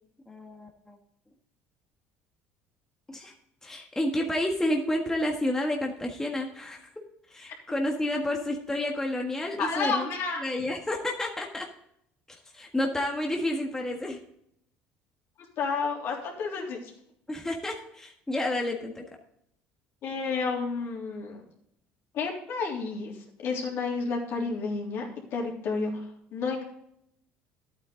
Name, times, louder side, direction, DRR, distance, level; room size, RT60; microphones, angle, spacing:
voice 1, 0.3-1.0 3.1-3.3 3.6-6.9 7.3-10.1 10.4-11.7 12.5-14.2 17.3-19.0, left 1 dB, 10° left, 1 dB, 1.6 m, -30 dB
voice 2, 9.6-10.5 15.6-16.9 20.0-21.4 22.1-23.1 23.4-25.1 25.3-26.1 26.3-26.7, left 4 dB, 60° left, -1 dB, 3.5 m, -30 dB
11.5 x 8.8 x 3.9 m, 0.73 s
supercardioid pair, 85°, 5 cm